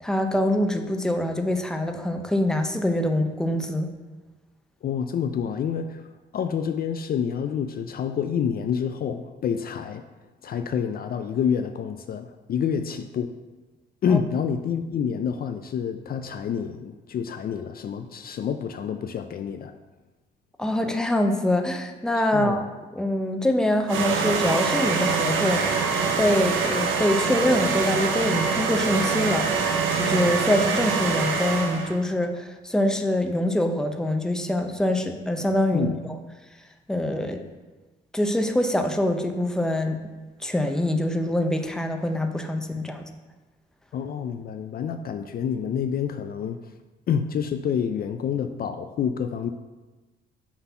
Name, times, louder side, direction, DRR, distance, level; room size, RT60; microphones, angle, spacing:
voice 1, 0.0-3.9 14.1-14.2 20.6-22.6 23.0-25.7 26.2-35.9 36.9-37.4 38.1-40.0 40.4-43.0, left 1 dB, 5° left, 5 dB, 0.6 m, -24 dB
voice 2, 4.8-10.1 10.4-13.3 14.0-19.7 22.3-22.7 35.7-36.0 43.9-46.7 47.1-49.5, left 7 dB, 50° left, 8 dB, 0.4 m, -28 dB
sound 1, 23.9-32.0, right 5 dB, 80° right, 0.6 m, -24 dB
5.8 x 4.0 x 5.6 m, 1.2 s
cardioid pair, 90°, 20 cm